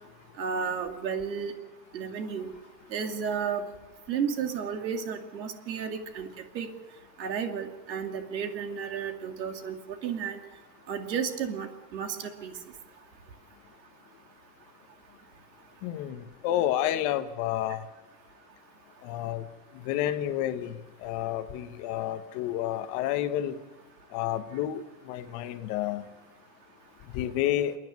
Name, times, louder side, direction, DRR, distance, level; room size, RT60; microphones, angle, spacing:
voice 1, 0.4-1.5 1.9-2.5 2.9-3.6 4.1-6.3 6.5-6.7 7.2-9.7 10.0-10.4 10.9-11.7 11.9-12.2 12.4-12.5, right 7 dB, 90° right, 5 dB, 2.6 m, -32 dB
voice 2, 15.8-17.8 19.0-19.4 19.7-23.6 24.1-26.1 27.1-27.8, left 12 dB, 35° left, 9 dB, 1.2 m, -30 dB
29.0 x 9.8 x 9.5 m, 1.2 s
supercardioid pair, 155°, 50 cm